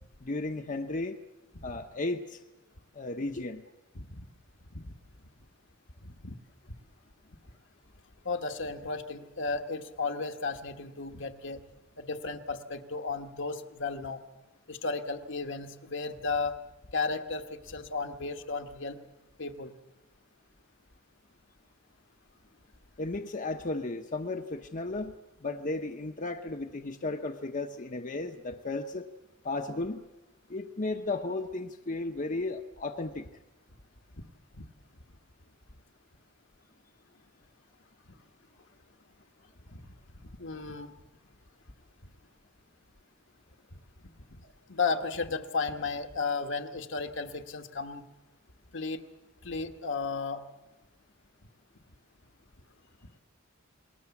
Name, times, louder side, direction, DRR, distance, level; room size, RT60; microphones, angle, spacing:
voice 1, 0.2-1.2 1.6-2.4 2.9-3.6 23.0-25.1 25.4-29.1 29.4-30.0 30.5-33.3, left 2 dB, 40° left, 5 dB, 1.0 m, -34 dB
voice 2, 3.9-4.2 4.7-4.8 6.0-6.3 8.2-11.6 12.0-14.2 14.7-16.6 16.9-19.0 19.4-19.7 34.5-34.6 39.7-39.8 40.2-40.9 44.7-48.1 48.7-49.0 49.4-50.4, left 4 dB, 65° left, 6 dB, 1.6 m, -34 dB
29.0 x 21.0 x 7.2 m, 1.1 s
head